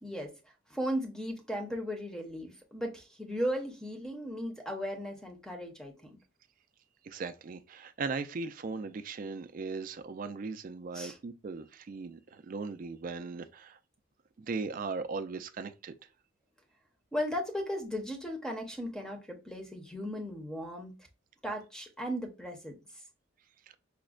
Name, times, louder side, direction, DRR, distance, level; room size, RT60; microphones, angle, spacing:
voice 1, 0.0-0.3 0.7-6.2 10.9-11.2 17.1-20.9 21.4-22.7, equal, 5° left, 0.6 m, -36 dB
voice 2, 7.0-13.8 14.4-15.9, right 4 dB, 40° right, 0.3 m, -38 dB
5.0 x 2.1 x 2.3 m
head